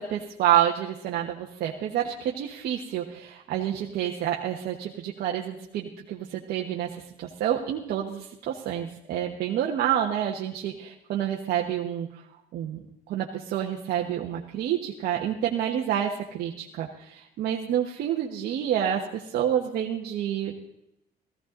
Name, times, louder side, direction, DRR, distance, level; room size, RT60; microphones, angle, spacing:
voice 1, 0.0-12.1 12.5-12.8 13.1-20.6, right 10 dB, 70° right, -1 dB, 1.3 m, -28 dB
15.5 x 15.0 x 3.9 m, 0.82 s
cardioid pair, 110°, 17 cm